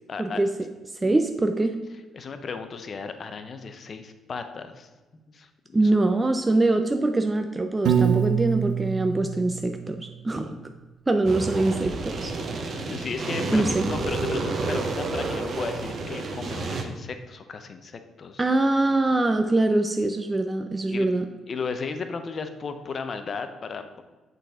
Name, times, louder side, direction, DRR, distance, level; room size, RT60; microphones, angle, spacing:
voice 1, 0.1-0.4 1.0-1.2 2.1-4.9 5.3-6.0 10.4-10.7 12.9-18.4 20.9-21.1 21.5-24.0, left 5 dB, 45° left, 8 dB, 0.7 m, -35 dB
voice 2, 1.0-1.7 5.7-10.6 11.1-12.9 13.5-13.9 18.4-21.3, right 2 dB, 20° right, 6 dB, 0.4 m, -23 dB
Piano, 7.8-10.1, right 9 dB, 75° right, 0.6 m, -25 dB
sound 1, 11.2-16.8, right 3 dB, 50° right, 0.9 m, -30 dB
6.7 x 4.0 x 4.8 m, 1.2 s
cardioid pair, 90°, 0 cm